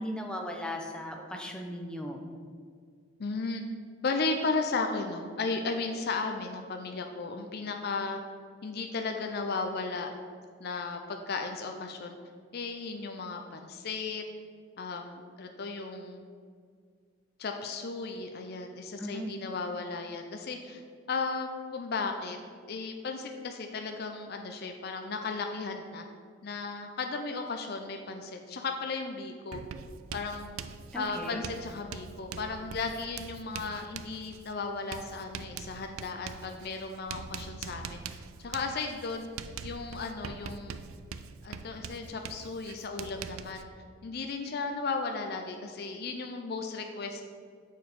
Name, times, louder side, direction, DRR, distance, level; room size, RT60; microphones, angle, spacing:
voice 1, 0.0-2.2 19.0-19.3 30.9-31.4, equal, 5° left, 2 dB, 0.6 m, -37 dB
voice 2, 3.2-3.6 4.0-8.2 8.6-10.1 10.6-12.2 12.5-14.2 14.8-16.3 17.4-20.8 21.1-22.4 22.7-26.0 26.4-29.6 30.1-30.5 30.9-39.3 39.6-40.8 41.4-43.7 44.0-47.2, left 4 dB, 50° left, 4 dB, 0.4 m, -35 dB
Writing, 29.5-43.6, right 6 dB, 85° right, 0.3 m, -43 dB
6.4 x 4.6 x 5.1 m, 2.1 s
head